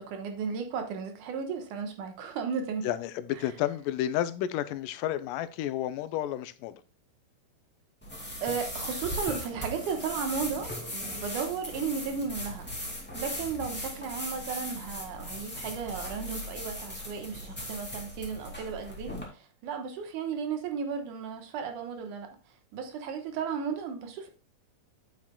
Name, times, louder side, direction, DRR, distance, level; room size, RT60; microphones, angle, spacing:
voice 1, 0.0-2.9 8.4-12.7 13.1-22.3 22.7-24.3, right 6 dB, 75° right, 2.6 m, -34 dB
voice 2, 2.8-6.8, left 12 dB, 85° left, 2.2 m, -31 dB
sound 1, 8.0-19.2, left 1 dB, 5° left, 1.6 m, -38 dB
8.7 x 8.3 x 2.2 m
omnidirectional pair, 3.7 m